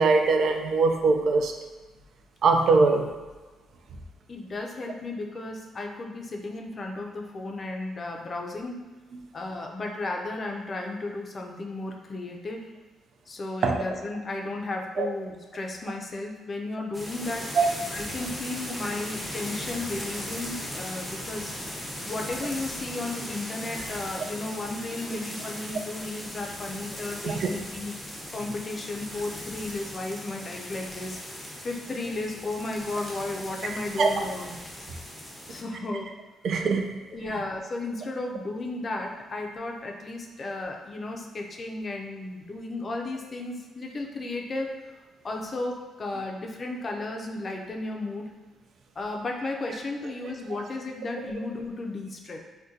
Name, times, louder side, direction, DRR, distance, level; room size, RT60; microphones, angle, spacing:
voice 1, 0.0-1.5 2.4-3.1 13.6-13.8 15.0-15.1 17.6-17.7 27.2-27.5 34.0-34.2 36.4-36.9, right 4 dB, 65° right, 4 dB, 0.3 m, -22 dB
voice 2, 4.3-8.9 9.3-12.7 13.3-17.6 17.9-21.5 22.1-27.9 28.3-34.5 35.5-36.1 37.1-44.8 45.2-48.3 49.0-52.4, left 2 dB, 40° left, 1 dB, 0.4 m, -34 dB
sound 1, 16.9-35.6, equal, 5° left, 0.7 m, -38 dB
2.7 x 2.2 x 3.7 m, 1.3 s
cardioid pair, 90°, 0 cm